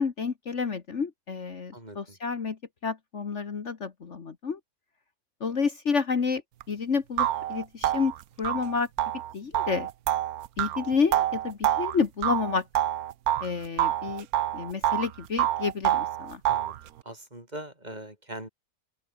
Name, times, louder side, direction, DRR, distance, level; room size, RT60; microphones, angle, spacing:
voice 1, 0.0-4.6 5.4-6.4 6.7-8.1 8.4-8.9 9.3-9.9 10.6-12.7 13.4-14.3 14.5-16.4, left 5 dB, 50° left, 1.8 m, -29 dB
voice 2, 1.7-2.2 16.5-16.8 17.1-18.5, right 1 dB, 25° right, 5.2 m, -41 dB
sound 1, 6.6-6.7 7.2-13.5 13.8-15.1 15.4-16.8, right 12 dB, 75° right, 1.2 m, -27 dB
open air
omnidirectional pair, 1.6 m